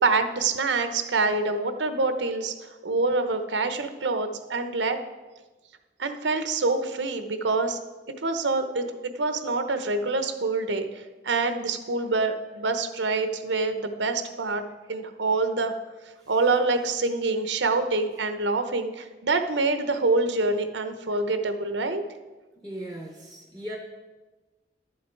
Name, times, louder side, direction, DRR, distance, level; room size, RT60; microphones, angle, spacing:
voice 1, 0.0-5.0 6.0-7.8 8.2-14.6 14.9-15.7 16.3-22.0, right 3 dB, 85° right, 8 dB, 0.9 m, -26 dB
voice 2, 22.6-23.8, right 1 dB, 5° left, 0 dB, 0.8 m, -37 dB
11.5 x 7.2 x 4.6 m, 1.2 s
head